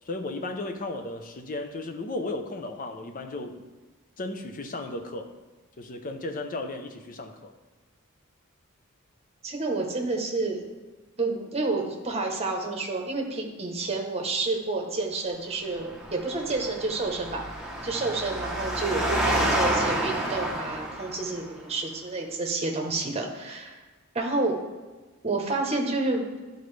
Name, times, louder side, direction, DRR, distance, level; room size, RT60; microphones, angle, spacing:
voice 1, 0.1-3.6 4.2-5.3 5.8-7.5, left 2 dB, 40° left, 6 dB, 0.6 m, -35 dB
voice 2, 9.4-10.6 11.2-17.5 17.8-23.8 24.1-24.6 25.2-26.2, right 3 dB, 30° right, 2 dB, 1.0 m, -29 dB
Engine, 15.8-21.4, right 1 dB, 5° right, 0.9 m, -29 dB
11.0 x 4.0 x 3.3 m, 1.3 s
head